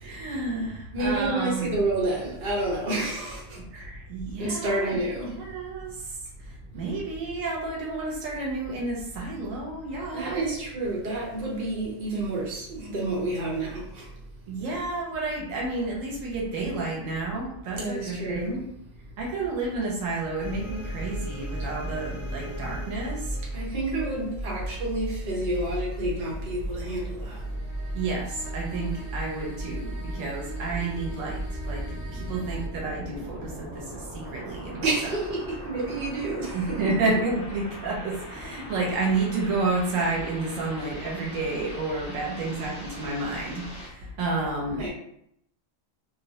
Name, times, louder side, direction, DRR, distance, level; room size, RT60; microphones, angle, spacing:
voice 1, 0.0-1.7 3.6-5.0 5.3-10.4 14.5-18.7 19.2-23.4 27.9-34.8 36.5-44.8, right 3 dB, 80° right, -3 dB, 1.0 m, -30 dB
voice 2, 0.9-3.6 4.4-5.4 10.1-14.1 17.7-18.6 23.5-27.4 34.8-36.9 44.8-44.9, right 2 dB, 50° right, -4 dB, 1.0 m, -29 dB
sound 1, 20.4-32.7, right 1 dB, 50° left, 0.7 m, -35 dB
sound 2, 31.4-43.9, equal, 5° right, 0.5 m, -41 dB
2.4 x 2.0 x 2.7 m, 0.74 s
omnidirectional pair, 1.4 m